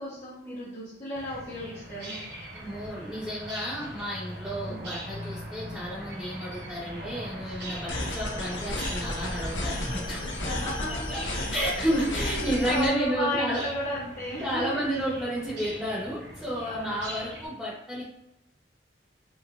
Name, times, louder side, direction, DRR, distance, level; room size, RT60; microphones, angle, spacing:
voice 1, 0.0-2.3 4.7-4.8 10.2-11.2 11.5-14.8 16.6-17.1, equal, 35° left, -13 dB, 1.1 m, -34 dB
sound 1, 1.1-17.5, equal, 60° right, 1.1 m, -41 dB
voice 2, 2.5-10.2 10.9-11.2 11.5-13.6 14.4-18.0, equal, 5° right, -12 dB, 0.9 m, -31 dB
sound 2, 7.9-12.9, left 1 dB, 80° left, 0.7 m, -33 dB
3.3 x 3.0 x 2.4 m, 0.86 s
head